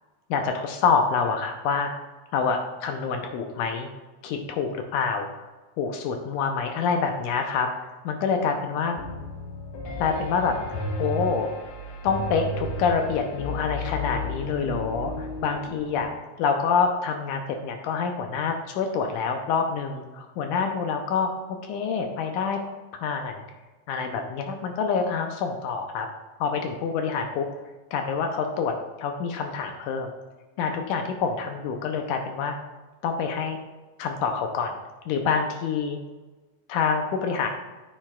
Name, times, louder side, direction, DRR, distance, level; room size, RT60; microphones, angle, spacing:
voice 1, 0.3-1.9 2.3-3.9 4.2-5.3 5.8-9.0 10.0-10.6 11.0-11.5 12.0-16.1 16.4-21.3 21.7-22.7 23.0-23.4 23.9-26.1 26.4-27.5 27.9-30.1 30.6-32.6 33.0-33.6 34.0-34.8 35.1-36.0 36.7-37.5, left 5 dB, 80° left, 4 dB, 2.0 m, -26 dB
Piano, 9.0-16.0, left 1 dB, 65° left, 1.9 m, -33 dB
9.4 x 7.3 x 2.3 m, 1.2 s
omnidirectional pair, 3.9 m